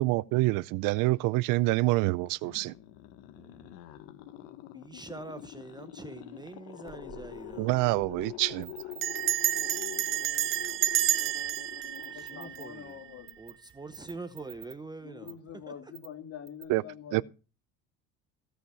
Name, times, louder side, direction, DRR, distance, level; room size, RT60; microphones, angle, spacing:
voice 1, 0.0-2.7 7.6-8.8 16.7-16.8 17.1-17.2, right 21 dB, 65° right, 0.6 m, -26 dB
sound 1, 2.2-13.4, left 14 dB, 70° left, 1.4 m, -46 dB
voice 2, 3.4-3.8 4.7-7.7 12.1-13.0 13.4-15.7, right 3 dB, 10° right, 0.8 m, -44 dB
Bell, 6.9-7.2 7.5-7.6 7.8-8.2 9.0-13.1, right 11 dB, 35° right, 0.9 m, -30 dB
sound 2, 8.6-10.6 10.9-11.0 11.2-11.6 11.9-12.6 13.3-13.5 13.9-14.7 15.3-15.4 15.9-16.1 16.5-16.6, right 19 dB, 80° right, 2.1 m, -46 dB
voice 3, 11.7-13.3 15.0-17.2, left 8 dB, 45° left, 2.6 m, -45 dB
16.5 x 5.7 x 5.6 m
supercardioid pair, 115°, 34 cm